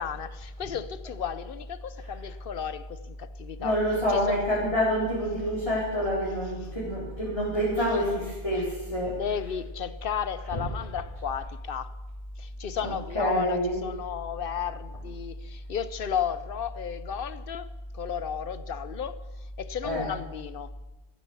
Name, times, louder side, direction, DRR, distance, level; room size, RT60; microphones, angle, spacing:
voice 1, 0.0-3.8 4.1-4.4 6.6-6.7 8.5-8.7 9.1-11.9 12.4-17.7 17.9-19.2 19.6-20.7, left 8 dB, 60° left, 1.0 m, -34 dB
voice 2, 3.6-9.2 10.5-10.6 12.8-13.8 19.8-20.1, equal, 30° left, 4.4 m, -27 dB
15.0 x 13.0 x 7.1 m
omnidirectional pair, 1.1 m